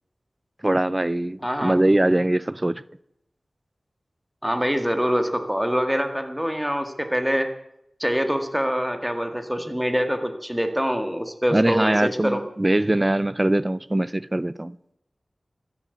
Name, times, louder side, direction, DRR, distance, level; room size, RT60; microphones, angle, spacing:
voice 1, 0.6-2.8 11.5-14.8, right 1 dB, 25° right, 0.5 m, -22 dB
voice 2, 1.4-1.8 4.4-7.5 8.0-12.4, equal, 5° right, 1.9 m, -24 dB
13.5 x 12.0 x 8.3 m
wide cardioid pair, 65°, 0 cm